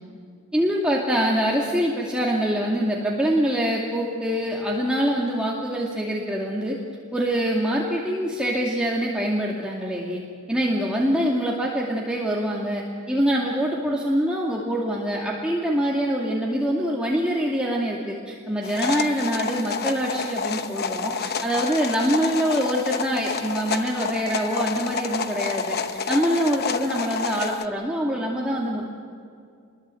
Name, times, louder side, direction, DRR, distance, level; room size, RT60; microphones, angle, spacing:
voice 1, 0.5-6.8 7.1-10.2 10.5-28.9, equal, 5° right, -4 dB, 2.4 m, -24 dB
sound 1, 18.6-27.7, left 5 dB, 45° left, 1.0 m, -29 dB
28.0 x 22.5 x 7.8 m, 2.3 s
head